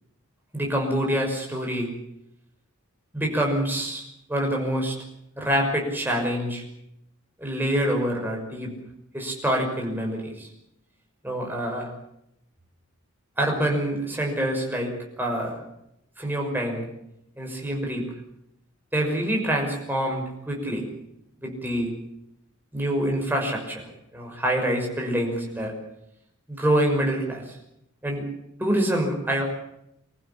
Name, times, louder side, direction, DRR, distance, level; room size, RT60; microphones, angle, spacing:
voice 1, 0.5-1.9 3.1-4.9 5.4-6.6 7.4-8.7 9.1-10.5 11.2-11.9 13.4-15.6 16.2-16.8 17.4-18.0 18.9-20.9 21.4-21.9 22.7-23.9 24.1-25.7 26.5-27.5 28.0-28.2 28.6-29.4, right 1 dB, 10° right, 1 dB, 6.0 m, -26 dB
26.0 x 15.0 x 8.8 m, 0.79 s
head